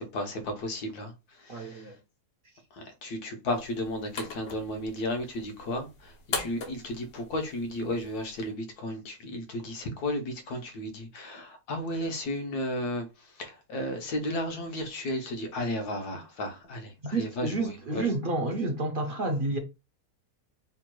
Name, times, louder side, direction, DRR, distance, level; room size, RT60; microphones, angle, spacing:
voice 1, 0.0-1.9 2.7-18.1, left 1 dB, 70° left, 1.4 m, -34 dB
voice 2, 1.5-2.0 17.0-19.6, right 2 dB, 60° right, 0.5 m, -30 dB
sound 1, 3.5-8.5, left 4 dB, 50° left, 1.0 m, -41 dB
4.5 x 3.5 x 2.2 m
omnidirectional pair, 1.7 m